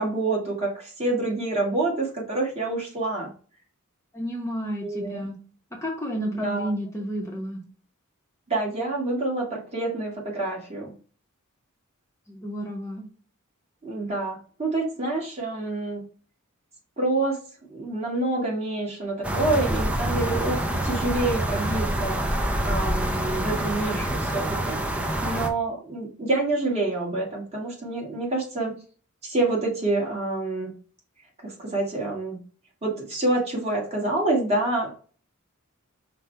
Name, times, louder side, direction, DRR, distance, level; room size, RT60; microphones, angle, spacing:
voice 1, 0.0-3.3 4.8-5.2 6.2-6.7 8.5-10.9 13.8-16.0 17.0-17.4 17.7-22.3 22.6-28.7 29.2-30.7 31.4-32.4 32.8-34.9, right 2 dB, 30° right, -2 dB, 1.6 m, -27 dB
voice 2, 4.1-5.3 5.8-7.6 12.3-13.0, equal, 15° left, -1 dB, 0.8 m, -31 dB
sound 1, 19.2-25.5, right 1 dB, 5° right, 0.5 m, -26 dB
5.1 x 2.2 x 4.3 m, 0.40 s
head